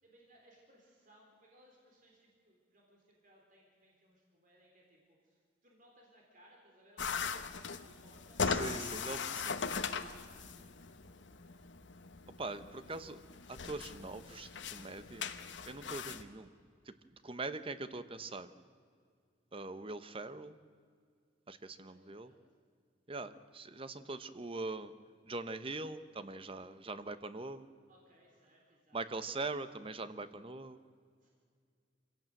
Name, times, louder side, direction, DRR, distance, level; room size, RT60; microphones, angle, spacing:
voice 1, 0.0-8.6 8.9-11.7 12.1-12.4 21.8-22.4 26.6-26.8 27.9-29.9 31.2-31.3, right 1 dB, 45° right, -1 dB, 3.9 m, -66 dB
sound 1, 7.0-16.2, left 5 dB, 70° left, 1.1 m, -40 dB
voice 2, 8.4-9.6 12.4-13.2 13.5-15.3 15.6-16.5 16.9-17.0 17.2-18.5 19.5-20.6 21.5-22.3 23.1-24.9 25.3-27.7 28.9-30.8, right 3 dB, 30° right, 12 dB, 0.9 m, -42 dB
25.0 x 17.0 x 7.7 m, 2.1 s
head